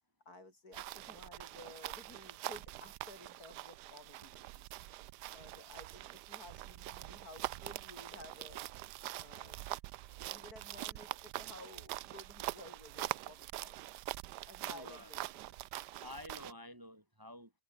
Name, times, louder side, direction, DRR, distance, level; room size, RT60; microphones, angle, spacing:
voice 1, 0.3-4.7 5.3-8.7 9.2-9.6 10.1-13.8 14.4-15.5, left 2 dB, 65° left, 7.4 m, -55 dB
sound 1, 0.7-16.5, right 16 dB, 85° right, 1.2 m, -44 dB
voice 2, 14.6-15.1 16.0-17.5, left 1 dB, 15° right, 1.7 m, -50 dB
open air
omnidirectional pair, 1.7 m